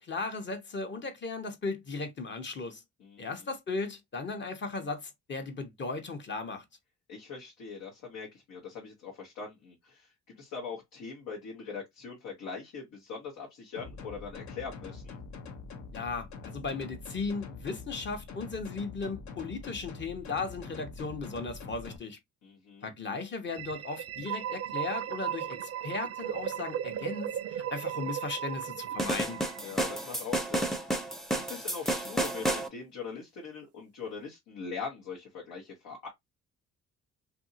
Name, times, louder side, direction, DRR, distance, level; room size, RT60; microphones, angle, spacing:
voice 1, 0.0-2.8 3.2-6.6 15.9-22.2 22.8-29.4, left 3 dB, 40° left, 0.8 m, -36 dB
voice 2, 3.0-3.3 7.1-15.2 22.4-22.9 29.6-31.1 31.3-36.1, left 5 dB, 90° left, 1.0 m, -42 dB
sound 1, 13.7-22.0, left 4 dB, 65° left, 0.7 m, -44 dB
sound 2, 23.5-30.2, right 10 dB, 55° right, 0.4 m, -36 dB
sound 3, 29.0-32.7, right 1 dB, ahead, 0.5 m, -31 dB
2.8 x 2.6 x 2.6 m
cardioid pair, 90°, 30 cm